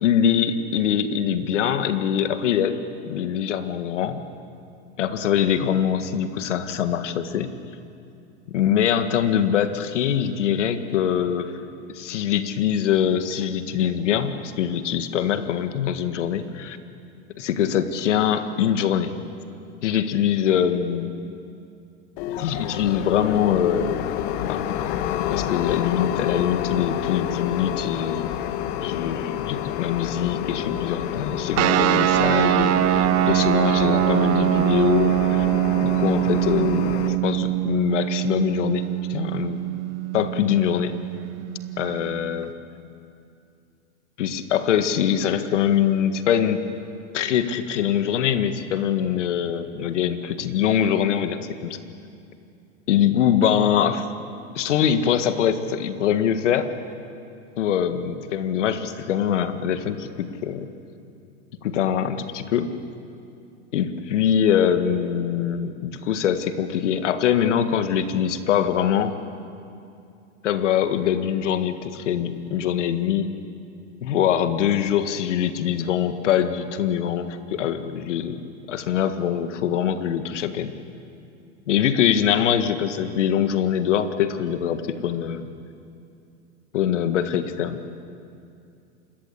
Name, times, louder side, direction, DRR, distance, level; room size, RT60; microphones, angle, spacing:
voice 1, 0.0-2.7 3.0-4.2 5.0-7.5 8.5-11.6 11.9-16.8 17.4-19.1 19.8-21.1 22.4-24.1 24.5-24.6 25.3-28.3 28.8-35.5 35.8-39.6 40.1-41.0 41.8-42.5 44.2-46.6 47.1-51.8 52.9-54.1 54.6-56.7 57.6-60.7 61.6-62.7 63.7-69.1 70.4-73.3 74.0-78.4 78.7-80.7 81.7-85.5 86.7-87.8, left 9 dB, 80° left, 9 dB, 1.9 m, -23 dB
sound 1, 22.2-37.2, left 11 dB, 60° left, 1.7 m, -29 dB
sound 2, 31.6-42.5, right 15 dB, 40° right, 1.1 m, -23 dB
27.5 x 21.0 x 8.5 m, 2.5 s
hypercardioid pair, 110°, 36 cm